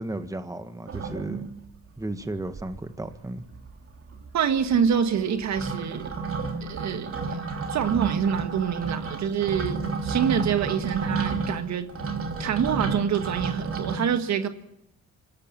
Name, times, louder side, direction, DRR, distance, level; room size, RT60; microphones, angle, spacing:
voice 1, 0.0-1.5 2.0-3.4, right 1 dB, 10° right, 9 dB, 1.5 m, -34 dB
sound 1, 0.9-1.8 2.2-2.3 2.5-3.1 3.4-14.0, right 4 dB, 45° right, 3.1 m, -31 dB
voice 2, 4.3-6.1 6.6-7.4 7.7-11.9 12.4-14.5, right 7 dB, 65° right, 8 dB, 1.7 m, -26 dB
25.5 x 13.5 x 7.7 m, 0.86 s
cardioid pair, 90°, 30 cm